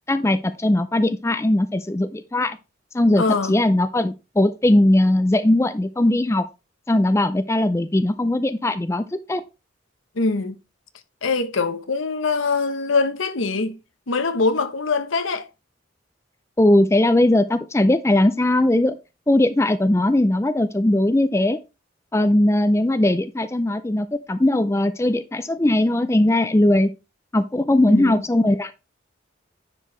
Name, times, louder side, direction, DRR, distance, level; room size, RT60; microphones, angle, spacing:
voice 1, 0.1-2.6 2.9-3.2 3.5-6.5 6.9-9.4 16.6-19.0 19.3-21.6 22.1-26.9 27.3-28.7, left 1 dB, 15° left, 0.4 m, -19 dB
voice 2, 3.2-3.5 10.1-10.6 11.2-13.8 14.1-15.5 27.9-28.2, left 4 dB, 85° left, 0.9 m, -23 dB
9.9 x 4.7 x 3.1 m
head